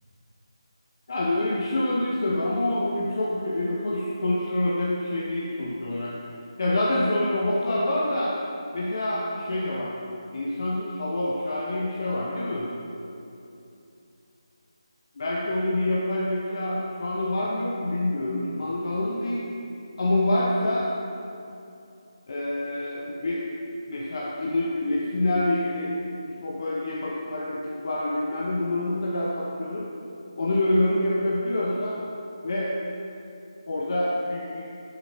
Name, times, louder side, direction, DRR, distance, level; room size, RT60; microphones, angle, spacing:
voice 1, 1.1-6.2 6.6-8.3 8.7-10.0 10.3-12.7 15.2-19.4 20.0-20.9 22.3-23.5 23.9-26.0 26.4-29.9 30.4-32.0 32.4-32.8 33.7-34.7, left 1 dB, 50° left, -4 dB, 0.8 m, -26 dB
8.4 x 7.1 x 2.9 m, 2.8 s
figure-of-eight pair, 160°, 3 cm